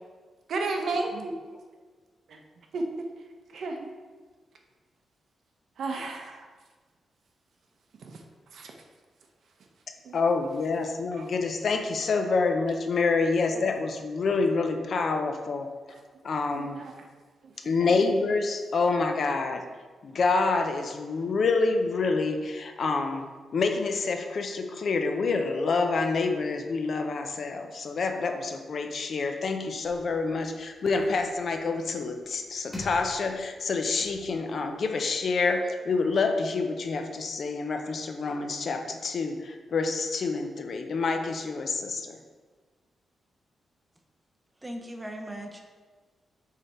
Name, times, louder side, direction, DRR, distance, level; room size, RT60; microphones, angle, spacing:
voice 1, 0.5-1.3 2.7-2.8 3.5-3.9 5.8-6.5 8.0-8.2 8.5-8.7 10.0-10.2 11.1-11.3 13.5-13.6 15.9-16.0 16.5-16.9 17.4-17.5 17.8-17.9, right 3 dB, 60° right, 3 dB, 0.7 m, -33 dB
voice 2, 10.1-15.7 16.2-16.8 17.6-19.7 20.0-42.2, left 4 dB, 45° left, 5 dB, 0.4 m, -27 dB
sound 1, 29.8-35.1, left 1 dB, 5° left, 1.0 m, -47 dB
voice 3, 44.6-45.7, right 1 dB, 10° right, 3 dB, 0.5 m, -38 dB
6.6 x 3.3 x 4.3 m, 1.4 s
wide cardioid pair, 175°, 0 cm